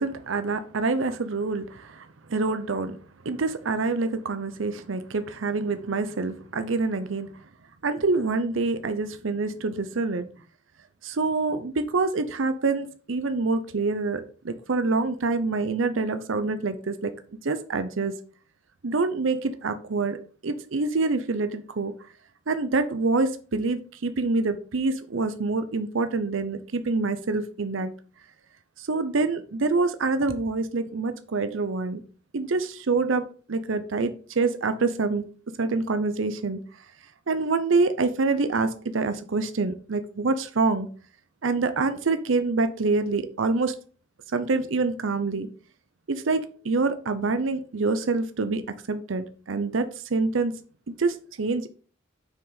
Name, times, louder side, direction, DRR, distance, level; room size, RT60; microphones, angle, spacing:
voice 1, 0.0-3.0 3.2-7.3 7.8-10.2 11.0-17.1 17.4-18.1 18.8-20.2 20.4-21.9 22.5-27.9 28.8-32.0 32.3-35.2 35.6-36.6 37.3-40.9 41.4-43.7 44.3-45.5 46.1-46.4 46.6-48.6 48.9-50.5 50.9-51.7, right 3 dB, 75° right, 10 dB, 0.6 m, -26 dB
7.4 x 6.2 x 4.0 m, 0.40 s
head